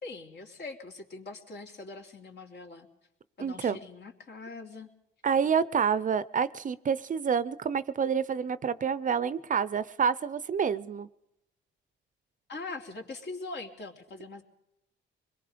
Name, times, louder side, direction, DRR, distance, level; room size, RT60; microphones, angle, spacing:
voice 1, 0.0-2.9 3.4-4.9 12.5-14.4, left 3 dB, 55° left, 2 dB, 3.1 m, -42 dB
voice 2, 3.4-3.8 5.2-11.1, right 7 dB, 40° right, 16 dB, 0.7 m, -28 dB
25.5 x 21.5 x 5.1 m, 0.84 s
cardioid pair, 90°, 20 cm